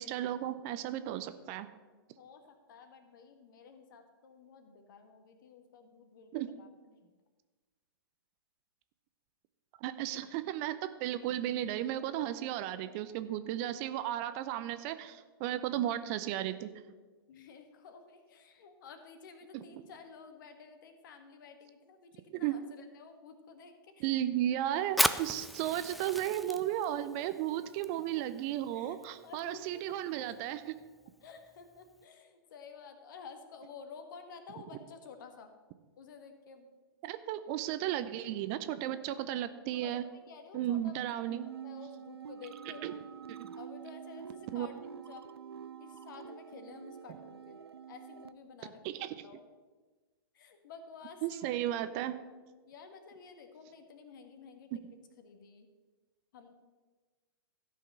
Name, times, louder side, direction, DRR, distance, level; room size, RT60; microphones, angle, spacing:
voice 1, 0.0-1.7 6.3-6.5 9.8-16.7 22.3-22.5 24.0-30.6 37.0-40.0 40.5-41.4 42.8-42.9 43.3-43.5 44.5-44.7 48.8-49.1 51.2-52.2 54.7-54.8, right 12 dB, 35° right, 12 dB, 0.6 m, -34 dB
voice 2, 2.2-7.1 17.3-24.2 27.6-27.7 28.2-28.3 28.7-29.0 29.2-30.5 31.2-35.5 36.0-36.7 37.5-37.8 39.7-41.4 41.6-42.9 43.6-45.3 45.8-47.6 47.9-48.8 49.1-49.4 50.3-51.6 52.7-54.7 55.2-55.7 56.3-56.5, left 5 dB, 55° left, 7 dB, 1.6 m, -52 dB
Fire, 24.8-32.0, equal, ahead, 0.3 m, -38 dB
sound 1, 41.3-48.3, right 8 dB, 85° right, 0.4 m, -47 dB
13.5 x 5.6 x 6.6 m, 1.3 s
figure-of-eight pair, 115°, 13 cm